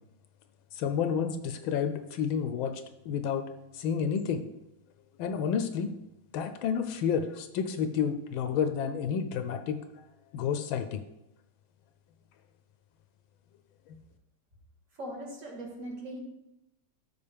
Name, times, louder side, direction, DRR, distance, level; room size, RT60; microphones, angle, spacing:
voice 1, 0.7-3.5 3.7-4.5 5.2-5.9 6.3-9.8 10.3-11.0 13.9-14.0, left 7 dB, 80° left, 8 dB, 1.3 m, -30 dB
voice 2, 15.0-16.2, right 1 dB, 40° right, -1 dB, 1.7 m, -40 dB
12.0 x 4.4 x 3.4 m, 0.91 s
omnidirectional pair, 2.2 m